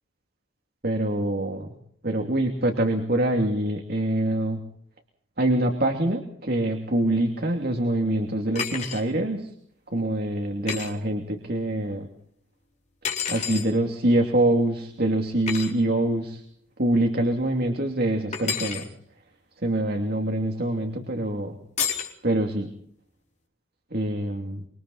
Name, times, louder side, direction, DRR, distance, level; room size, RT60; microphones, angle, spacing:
voice 1, 0.8-1.7 2.0-4.6 5.4-9.5 9.9-12.1 13.3-16.4 16.8-18.9 19.6-21.5 22.2-22.7 23.9-24.6, right 1 dB, 55° right, 3 dB, 2.9 m, -25 dB
sound 1, 8.6-9.0 10.7-10.9 13.0-13.7 15.5-15.7 18.3-18.9 21.8-22.1, left 7 dB, 40° left, 4.1 m, -29 dB
26.5 x 24.5 x 4.2 m, 0.65 s
head